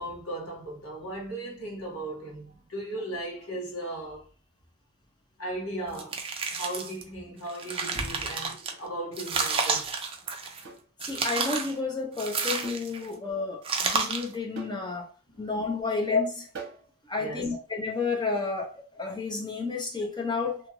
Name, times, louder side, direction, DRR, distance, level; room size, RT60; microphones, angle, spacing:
voice 1, 0.0-4.2 5.4-6.2 6.5-9.9 13.1-13.3 15.3-15.4 15.8-16.0 16.7-16.8 17.1-17.5, right 1 dB, 70° left, 1.3 m, -37 dB
sound 1, 5.9-7.0 7.5-8.7 9.2-10.6 11.0-11.7 12.2-13.1 13.6-14.3, right 4 dB, 25° right, 0.4 m, -30 dB
sound 2, 8.7-8.9 10.6-10.9 12.6-12.9 13.2-13.3 14.5-14.9 16.5-16.9, right 4 dB, 55° right, 0.8 m, -42 dB
voice 2, 11.0-15.1 15.4-16.5 17.1-20.6, left 4 dB, 20° left, 0.6 m, -31 dB
2.8 x 2.4 x 2.9 m
head